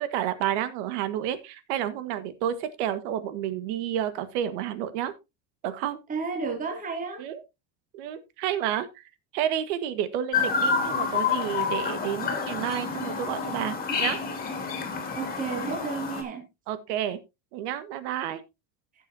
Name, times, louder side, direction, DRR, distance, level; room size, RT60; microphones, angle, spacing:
voice 1, 0.0-5.1 5.6-6.0 7.2-7.4 7.9-8.9 9.3-14.2 16.7-17.2 17.5-18.4, right 10 dB, 80° right, 1.6 m, -30 dB
voice 2, 6.1-7.2 15.1-16.5, right 5 dB, 25° right, 2.5 m, -32 dB
Chirp tweet, 10.3-16.2, left 5 dB, 25° left, 2.3 m, -28 dB
16.0 x 7.2 x 2.7 m
cardioid pair, 160°, 34 cm